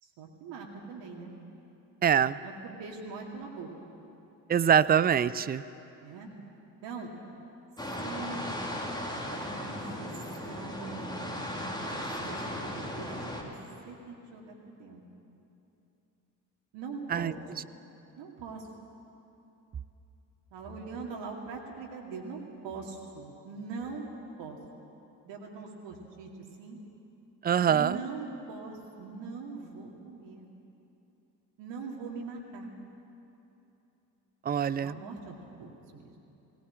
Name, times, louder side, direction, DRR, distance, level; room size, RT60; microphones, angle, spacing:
voice 1, 0.0-1.3 2.4-2.5 2.8-3.7 6.0-6.3 6.8-7.1 8.0-8.6 9.3-10.1 10.5-11.1 11.5-13.5 13.8-15.0 16.7-17.3 17.6-17.7 18.2-18.7 20.5-24.1 24.4-24.6 25.2-26.3 26.6-26.8 27.7-30.5 31.6-32.7 34.8-36.1, right 4 dB, 60° right, 0 dB, 2.4 m, -42 dB
voice 2, 2.0-2.4 4.5-5.6 17.1-17.3 27.4-28.0 34.4-35.0, right 8 dB, 20° right, 17 dB, 0.5 m, -24 dB
sound 1, 7.8-13.4, equal, 10° left, 3.3 m, -36 dB
18.0 x 18.0 x 8.4 m, 2.9 s
figure-of-eight pair, 45°, 49 cm